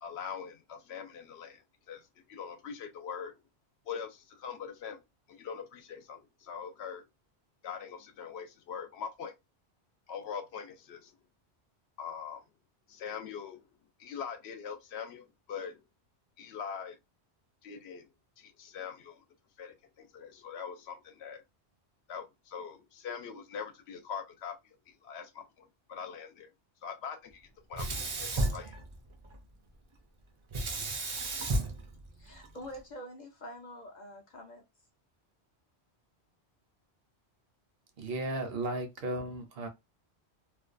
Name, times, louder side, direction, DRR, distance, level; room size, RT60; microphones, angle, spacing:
voice 1, 0.0-3.4 3.9-5.0 5.3-7.0 7.6-9.3 10.1-11.2 12.0-12.4 12.9-13.7 14.0-15.8 16.4-17.0 17.6-18.1 18.4-19.2 19.6-21.4 22.1-26.5 26.8-28.7, left 7 dB, 80° left, 0.8 m, -42 dB
Sink (filling or washing), 27.7-29.4 30.5-32.8, right 2 dB, 50° right, 0.3 m, -33 dB
voice 2, 32.2-34.6, equal, 55° left, 0.5 m, -46 dB
voice 3, 38.0-39.7, right 2 dB, 65° right, 0.8 m, -35 dB
2.4 x 2.2 x 2.4 m
omnidirectional pair, 1.1 m